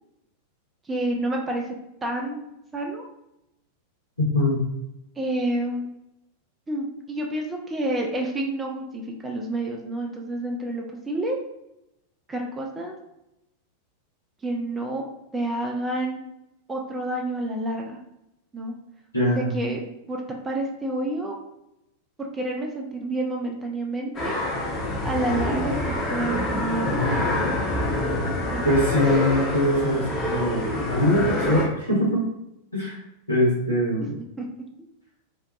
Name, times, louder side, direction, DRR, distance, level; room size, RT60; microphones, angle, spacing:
voice 1, 0.9-1.7 2.0-2.4 2.7-3.1 5.2-5.9 6.7-11.4 12.3-12.9 14.4-15.0 15.3-16.2 16.7-18.0 18.5-18.7 19.4-21.3 22.2-24.4 25.0-27.0 28.5-28.6 34.0-34.5, right 1 dB, 15° right, 0 dB, 0.4 m, -29 dB
voice 2, 4.2-4.6 19.1-19.5 28.6-32.2 32.7-33.0 33.3-34.1, left 1 dB, 85° left, -8 dB, 1.1 m, -22 dB
sound 1, 24.1-31.6, left 1 dB, 20° left, 0.8 m, -26 dB
2.6 x 2.2 x 2.3 m, 0.85 s
figure-of-eight pair, 90°, 0 cm